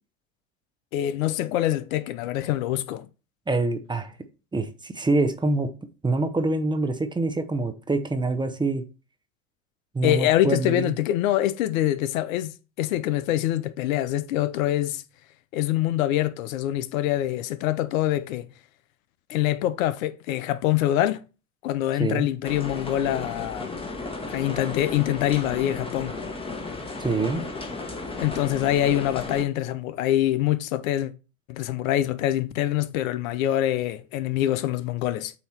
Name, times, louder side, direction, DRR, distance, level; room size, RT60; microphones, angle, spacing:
voice 1, 0.9-3.1 10.0-15.0 15.5-18.5 19.3-21.2 21.6-23.7 24.3-26.2 28.2-31.1 31.5-35.3, left 13 dB, 70° left, 0.7 m, -25 dB
voice 2, 3.5-4.1 4.5-5.7 6.0-8.8 9.9-10.9 22.0-22.3 27.0-27.4, right 2 dB, 10° right, 0.8 m, -25 dB
sound 1, 22.4-29.4, left 3 dB, 15° left, 1.3 m, -34 dB
8.5 x 2.9 x 4.4 m
hypercardioid pair, 90°, 42 cm